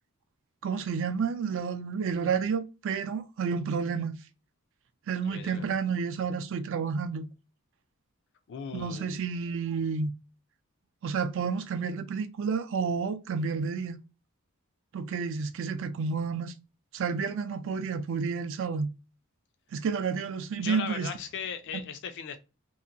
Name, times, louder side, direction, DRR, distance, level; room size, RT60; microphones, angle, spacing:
voice 1, 0.6-4.2 5.1-7.3 8.7-10.1 11.0-14.0 14.9-16.5 16.9-18.9 19.7-21.1, right 5 dB, 60° right, 0.4 m, -30 dB
voice 2, 5.2-5.6 8.5-9.2 20.6-22.4, left 7 dB, 55° left, 0.3 m, -38 dB
2.8 x 2.5 x 2.5 m
head